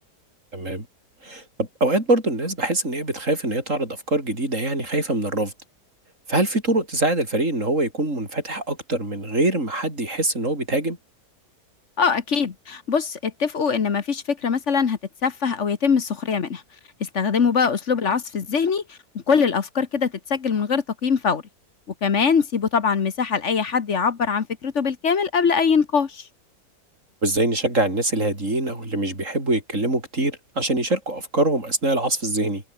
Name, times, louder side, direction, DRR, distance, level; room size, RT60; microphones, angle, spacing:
voice 1, 0.5-0.9 1.2-5.5 6.3-11.0 27.2-32.6, right 2 dB, 45° right, 7.8 m, -24 dB
voice 2, 12.0-16.6 17.0-19.0 19.3-21.4 22.0-26.3, left 6 dB, 45° left, 1.4 m, -22 dB
omnidirectional pair, 1.9 m